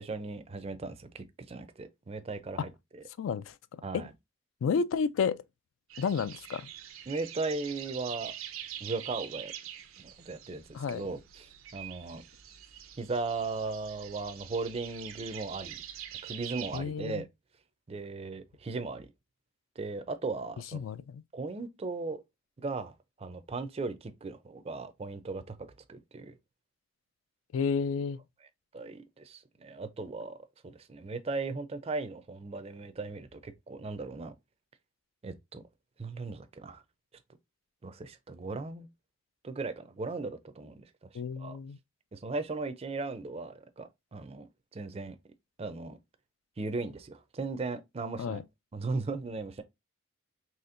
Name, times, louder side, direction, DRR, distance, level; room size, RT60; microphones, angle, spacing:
voice 1, 0.0-3.0 3.8-4.1 7.1-8.3 8.8-9.5 10.0-10.6 10.9-12.2 13.0-15.8 16.2-17.2 17.9-19.1 19.8-20.8 21.3-22.2 22.6-22.9 23.2-25.6 25.9-26.3 28.7-30.4 30.6-34.3 35.2-35.6 36.0-36.8 37.8-38.9 39.4-40.8 41.4-41.6 42.1-45.2 45.6-46.0 46.6-48.4 48.7-49.6, right 3 dB, 30° right, 0.4 m, -37 dB
voice 2, 3.2-3.5 3.9-4.1 4.6-5.4 6.0-6.7 10.7-11.0 16.7-17.2 20.7-21.2 27.5-28.2 41.1-41.8 48.2-48.4, left 6 dB, 75° left, 0.3 m, -31 dB
sound 1, 5.9-16.8, right 10 dB, 90° right, 0.6 m, -45 dB
4.2 x 2.9 x 2.5 m
head